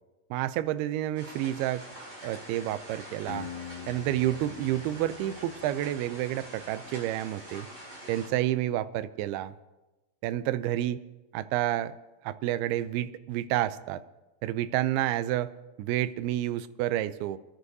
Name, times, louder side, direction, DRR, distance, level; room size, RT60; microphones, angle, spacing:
voice 1, 0.3-1.8 2.2-3.5 3.9-7.7 8.1-9.5 10.2-11.0 11.3-11.9 12.2-14.0 14.4-15.5 15.8-17.4, right 13 dB, 85° right, 15 dB, 2.5 m, -29 dB
sound 1, 1.2-8.3, right 1 dB, 20° right, 4.4 m, -45 dB
Acoustic guitar, 3.3-6.3, left 9 dB, 75° left, 2.4 m, -44 dB
27.5 x 11.5 x 2.7 m, 1.1 s
omnidirectional pair, 4.5 m